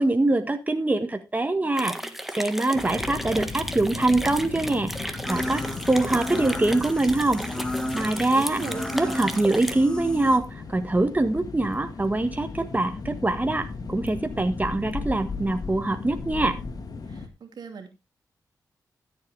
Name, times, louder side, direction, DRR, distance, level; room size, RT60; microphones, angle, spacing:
voice 1, 0.0-1.9 2.3-7.4 7.9-8.6 8.9-16.6, right 2 dB, 25° right, 6 dB, 1.6 m, -24 dB
sound 1, 1.8-9.7, equal, 5° right, 1.6 m, -35 dB
sound 2, 2.7-17.3, left 4 dB, 60° left, 1.8 m, -36 dB
sound 3, 5.3-10.4, left 1 dB, 10° left, 1.9 m, -34 dB
voice 2, 8.3-9.2 17.1-17.9, right 5 dB, 80° right, 4 dB, 2.5 m, -37 dB
13.5 x 7.9 x 3.5 m, 0.25 s
cardioid pair, 55°, 7 cm